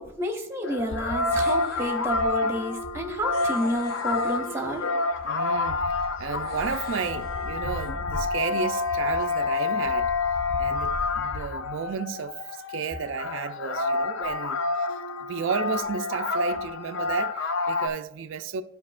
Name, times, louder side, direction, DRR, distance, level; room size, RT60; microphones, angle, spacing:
voice 1, 0.0-4.8, equal, 15° right, 1.1 m, -30 dB
sound 1, 0.6-17.9, left 3 dB, 70° left, 0.6 m, -28 dB
sound 2, 1.3-2.0 3.3-4.9 6.4-7.9, left 1 dB, 50° left, 1.7 m, -44 dB
voice 2, 5.2-5.8 6.2-10.1 10.6-18.6, right 6 dB, 75° right, 0.4 m, -32 dB
12.5 x 5.0 x 2.4 m
head